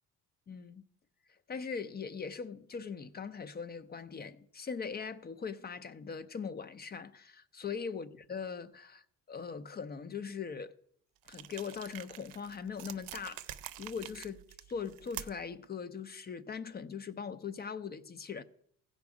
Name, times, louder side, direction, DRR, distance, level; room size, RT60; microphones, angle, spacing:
voice 1, 0.5-0.8 1.5-10.7 11.3-14.4 14.7-18.4, left 6 dB, 30° left, 0.5 m, -41 dB
sound 1, 11.2-15.5, right 13 dB, 85° right, 0.6 m, -47 dB
15.5 x 5.3 x 4.8 m
cardioid pair, 95°, 32 cm